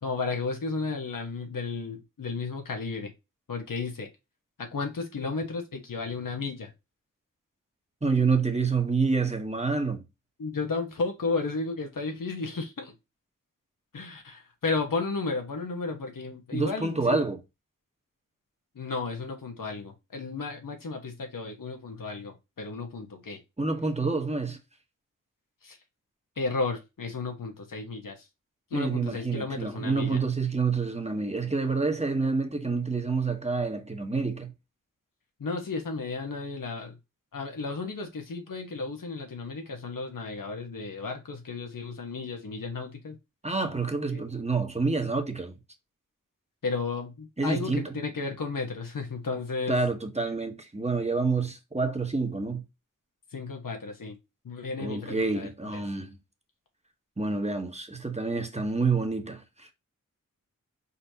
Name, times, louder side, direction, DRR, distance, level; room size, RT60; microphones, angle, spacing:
voice 1, 0.0-3.1 3.5-4.1 4.6-6.7 10.4-12.9 13.9-17.2 18.7-23.4 25.6-25.8 26.4-28.2 28.7-30.2 35.4-37.0 37.3-43.2 44.1-44.2 46.6-49.8 53.3-54.1 54.4-55.8, left 4 dB, 80° left, 1.2 m, -33 dB
voice 2, 8.0-10.0 16.5-17.4 23.6-24.6 28.7-34.5 43.4-45.5 47.4-47.9 49.7-52.6 54.8-56.2 57.2-59.7, right 4 dB, 20° right, 1.1 m, -28 dB
4.7 x 4.0 x 2.8 m
cardioid pair, 50°, 32 cm